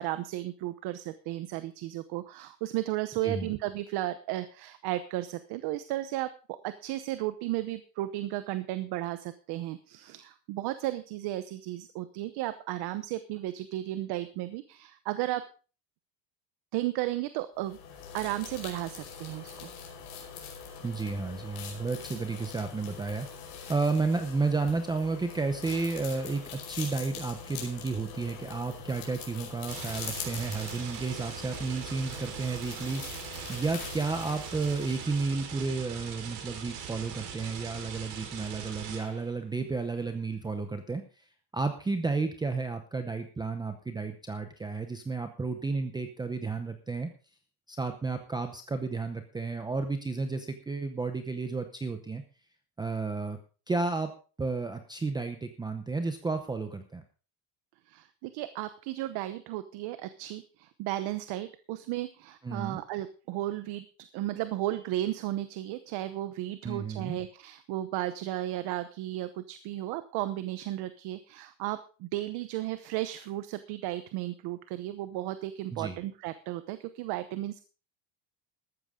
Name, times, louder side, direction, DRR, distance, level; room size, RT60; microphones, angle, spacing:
voice 1, 0.0-15.5 16.7-17.8 18.1-19.7 57.9-63.9 64.1-77.6, right 15 dB, 50° right, 12 dB, 1.0 m, -34 dB
wet shave, 17.6-35.4, left 6 dB, 45° left, 5.2 m, -43 dB
voice 2, 20.8-41.2 41.5-47.1 47.7-52.2 52.8-53.4 53.7-54.1 54.4-57.0 62.4-62.8 66.6-67.2 75.7-76.0, right 3 dB, 10° right, 7 dB, 0.7 m, -32 dB
sound 1, 25.7-26.6 29.7-39.4, right 8 dB, 75° right, 4.5 m, -41 dB
14.0 x 12.5 x 3.7 m, 0.37 s
cardioid pair, 165°, 50 cm